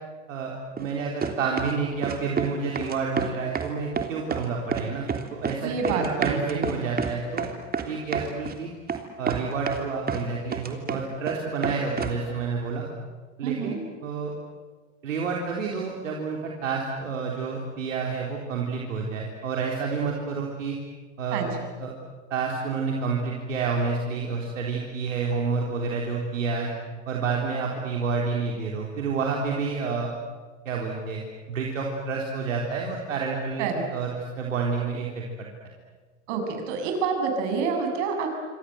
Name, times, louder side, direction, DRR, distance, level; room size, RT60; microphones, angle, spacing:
sound 1, 0.8-0.9 1.2-1.8 2.0-2.5 2.8-3.7 4.0-4.5 4.7-5.6 5.8-8.6 8.9-9.0 9.3-10.2 10.5-11.4 11.6-12.2, right 6 dB, 25° right, 3.4 m, -29 dB
voice 1, 0.8-7.5 7.9-8.7 9.2-12.8 13.4-14.3 15.0-20.8 21.2-21.5 21.8-21.9 22.3-26.7 27.1-30.1 30.7-31.2 31.5-35.5, right 4 dB, 80° right, -1 dB, 3.8 m, -29 dB
voice 2, 5.6-6.8 13.4-13.8 21.3-21.5 33.6-33.9 36.3-38.3, right 5 dB, 60° right, 4 dB, 7.6 m, -28 dB
27.5 x 25.5 x 7.9 m, 1.4 s
hypercardioid pair, 85°, 38 cm